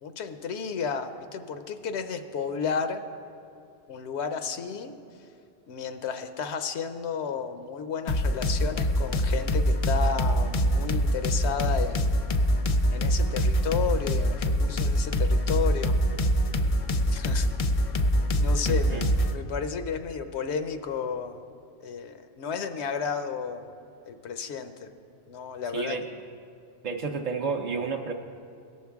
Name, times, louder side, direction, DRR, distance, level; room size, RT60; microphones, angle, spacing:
voice 1, 0.0-3.0 3.9-5.0 5.7-12.1 12.9-15.9 17.1-17.5 18.4-19.1 19.3-21.4 21.8-23.7 24.1-24.9 25.3-26.0, left 6 dB, 85° left, 8 dB, 0.9 m, -32 dB
sound 1, 8.1-19.4, equal, 50° left, 0.4 m, -24 dB
voice 2, 18.7-19.0 25.7-26.0 26.8-28.1, right 5 dB, 50° right, 2 dB, 0.5 m, -31 dB
17.5 x 6.4 x 3.5 m, 2.4 s
omnidirectional pair, 1.1 m